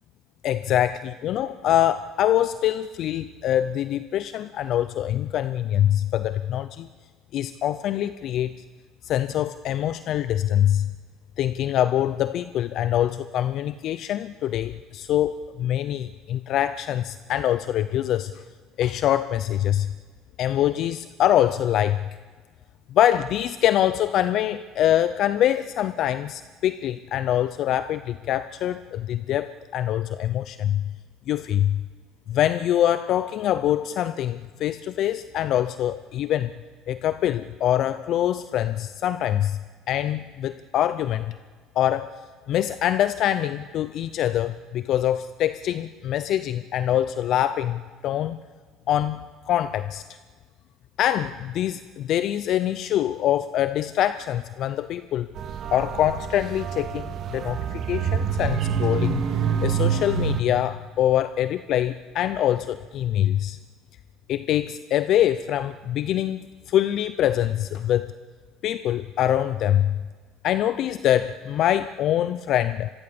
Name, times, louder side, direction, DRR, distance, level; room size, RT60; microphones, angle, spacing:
voice 1, 0.4-6.9 7.3-8.5 9.0-10.9 11.4-18.4 18.8-19.9 20.4-22.0 22.9-30.8 31.3-31.8 32.3-36.5 36.9-39.6 39.9-41.4 41.8-42.2 42.5-48.4 48.9-50.0 51.0-55.3 55.7-59.2 59.6-63.6 64.3-66.4 66.7-68.1 68.6-70.0 70.4-72.9, left 11 dB, 55° left, 13 dB, 0.6 m, -24 dB
sound 1, 55.4-60.4, right 7 dB, 50° right, 2.2 m, -26 dB
25.0 x 22.5 x 6.9 m, 1.5 s
cardioid pair, 115°, 0 cm